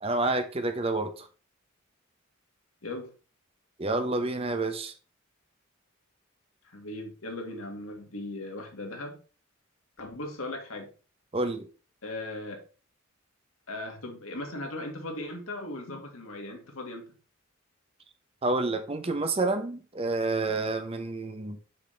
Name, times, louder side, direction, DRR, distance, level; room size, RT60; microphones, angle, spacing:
voice 1, 0.0-1.3 3.8-4.9 11.3-11.7 18.4-21.6, right 2 dB, 30° right, 0.7 m, -29 dB
voice 2, 6.6-9.2 10.0-10.9 12.0-12.6 13.7-17.1, left 2 dB, 80° left, 1.9 m, -38 dB
6.5 x 5.8 x 3.3 m
head